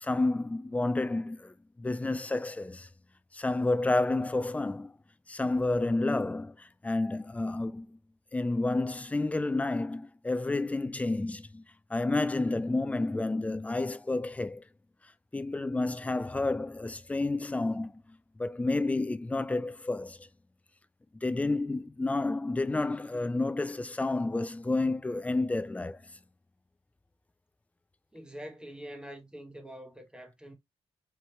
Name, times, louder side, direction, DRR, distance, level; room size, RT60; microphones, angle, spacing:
voice 1, 0.0-2.9 3.3-4.9 5.3-7.9 8.3-11.6 11.9-14.6 15.3-17.9 18.4-20.2 21.2-26.0, left 2 dB, 15° left, 0.4 m, -30 dB
voice 2, 28.1-30.5, equal, 10° right, 1.2 m, -45 dB
4.5 x 2.8 x 3.2 m
cardioid pair, 90°, 11 cm